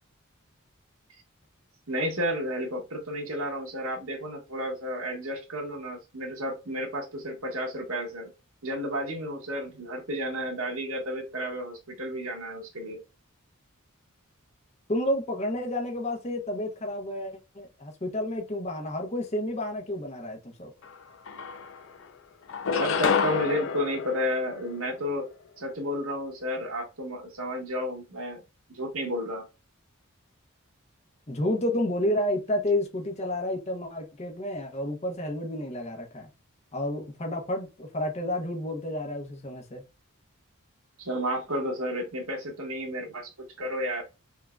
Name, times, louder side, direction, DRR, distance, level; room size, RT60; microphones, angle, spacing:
voice 1, 1.9-8.3 8.6-13.0 22.7-25.3 25.6-28.4 28.7-29.5 41.0-44.0, equal, 90° right, 1.5 m, -32 dB
voice 2, 14.9-20.7 31.3-36.3 36.7-39.8, left 1 dB, 30° left, 0.9 m, -30 dB
sound 1, 20.8-20.9 21.3-22.0 22.5-25.1, left 6 dB, 65° left, 0.5 m, -29 dB
3.7 x 3.6 x 2.3 m
head